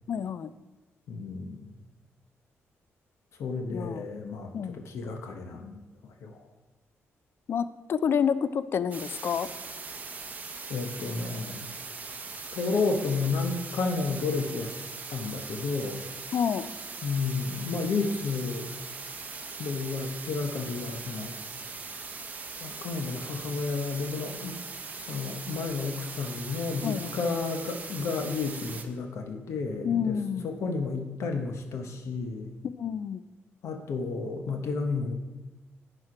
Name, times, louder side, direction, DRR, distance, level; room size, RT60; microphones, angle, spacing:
voice 1, 0.1-0.5 3.7-4.1 4.5-4.8 7.5-9.5 16.3-16.7 26.8-27.2 29.8-30.5 32.6-33.2, left 7 dB, 55° left, 14 dB, 0.4 m, -29 dB
voice 2, 1.1-1.9 3.4-6.4 10.7-11.7 12.5-14.8 15.1-16.0 17.0-18.7 19.6-21.4 22.6-24.6 25.0-30.2 30.4-32.5 33.6-35.1, left 4 dB, 75° left, 5 dB, 0.9 m, -32 dB
sound 1, 8.9-28.8, right 4 dB, 35° right, 0.7 m, -40 dB
11.0 x 4.4 x 4.9 m, 1.2 s
cardioid pair, 115°, 5 cm